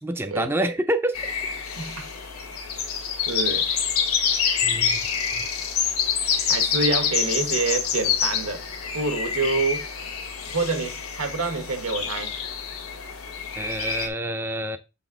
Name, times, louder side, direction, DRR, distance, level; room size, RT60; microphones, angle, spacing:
voice 1, 0.0-1.3 4.6-5.0 5.4-5.5 13.6-14.8, right 1 dB, 10° right, 0.4 m, -27 dB
sound 1, 1.1-14.1, left 7 dB, 85° left, 1.3 m, -27 dB
voice 2, 3.3-3.7 6.5-8.7 8.9-9.9 10.5-12.3, right 3 dB, 80° right, 1.2 m, -27 dB
6.7 x 4.0 x 3.7 m
head